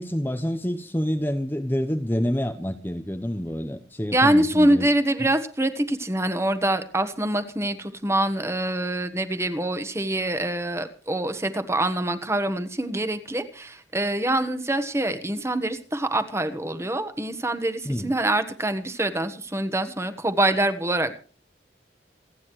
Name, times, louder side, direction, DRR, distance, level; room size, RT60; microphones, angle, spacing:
voice 1, 0.0-4.9 17.8-18.1, equal, 10° left, 0.8 m, -27 dB
voice 2, 4.1-21.1, right 1 dB, 15° right, 1.2 m, -25 dB
28.0 x 9.5 x 3.1 m
head